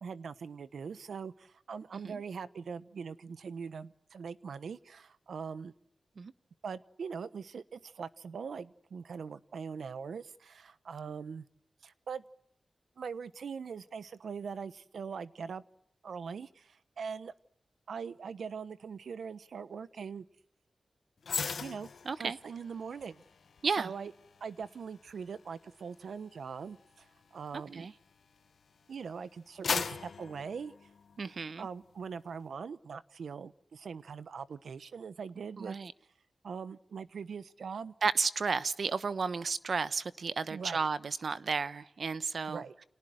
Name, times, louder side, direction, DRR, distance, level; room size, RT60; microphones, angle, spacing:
voice 1, 0.0-5.7 6.6-11.4 11.8-12.2 13.0-15.6 16.0-17.3 17.9-20.3 21.6-21.9 22.2-23.2 23.8-24.1 24.4-27.1 27.3-27.9 28.9-30.7 31.6-35.8 36.4-37.9 40.5-40.9 42.5-42.7, right 6 dB, 85° right, 1.1 m, -42 dB
sound 1, 21.2-28.6 29.1-31.5 31.8-32.0, left 5 dB, 75° left, 1.3 m, -40 dB
voice 2, 22.0-22.4 23.6-23.9 27.7-27.9 31.2-31.7 35.6-35.9 38.0-42.6, right 5 dB, 60° right, 1.1 m, -33 dB
30.0 x 28.5 x 6.5 m
wide cardioid pair, 120°, 0 cm